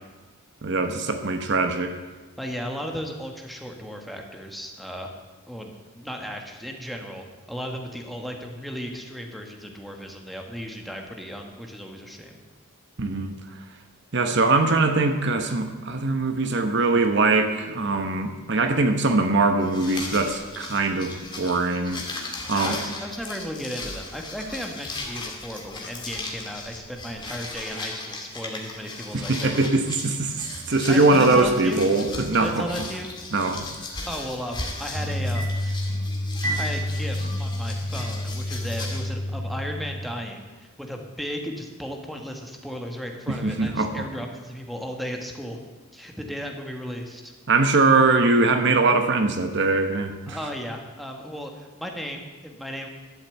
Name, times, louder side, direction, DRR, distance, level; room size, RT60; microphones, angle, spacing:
voice 1, 0.6-1.9 13.0-13.3 14.1-22.0 22.5-22.8 29.1-30.3 30.7-32.6 33.3-33.7 43.3-44.0 47.5-50.4, right 3 dB, 55° right, 7 dB, 1.0 m, -22 dB
voice 2, 2.4-5.1 5.5-12.4 22.5-29.6 30.4-31.8 32.4-33.1 34.1-35.8 36.4-45.6 45.9-47.3 50.3-52.9, equal, ahead, 2 dB, 1.3 m, -35 dB
sound 1, 19.6-39.0, left 3 dB, 20° left, 2.0 m, -37 dB
sound 2, 34.9-40.0, left 1 dB, 35° right, 3.7 m, -28 dB
12.0 x 7.1 x 8.1 m, 1.2 s
head